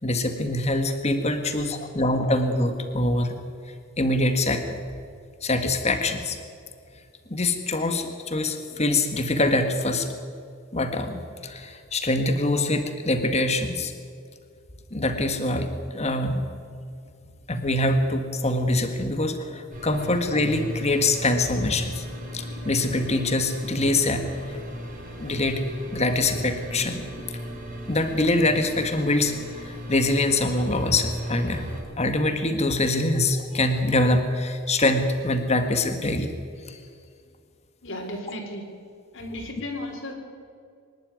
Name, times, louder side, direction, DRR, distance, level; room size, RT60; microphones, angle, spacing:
voice 1, 0.0-3.3 4.0-4.8 5.4-6.4 7.3-10.1 10.7-13.9 14.9-16.5 17.5-22.0 22.3-24.6 25.2-25.6 25.9-27.2 27.9-31.7 32.0-36.3 36.7-36.8, left 2 dB, 30° left, 7 dB, 1.7 m, -24 dB
sound 1, 19.7-31.8, equal, 40° right, 4.0 m, -36 dB
voice 2, 37.8-38.6 39.1-40.1, left 1 dB, 60° left, 2 dB, 3.7 m, -34 dB
24.5 x 11.5 x 9.5 m, 2.2 s
head